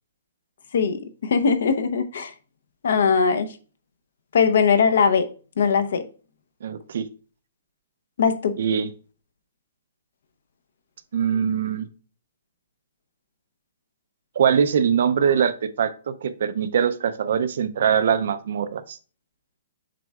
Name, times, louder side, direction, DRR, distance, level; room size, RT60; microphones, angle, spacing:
voice 1, 0.7-2.3 2.8-3.5 4.3-5.3 5.6-6.1 8.2-8.6, left 6 dB, 55° left, 0.7 m, -20 dB
voice 2, 6.6-7.0 8.6-8.9 11.1-11.9 14.4-19.0, right 7 dB, 50° right, 0.5 m, -22 dB
7.6 x 5.3 x 2.3 m
hypercardioid pair, 180°, 0 cm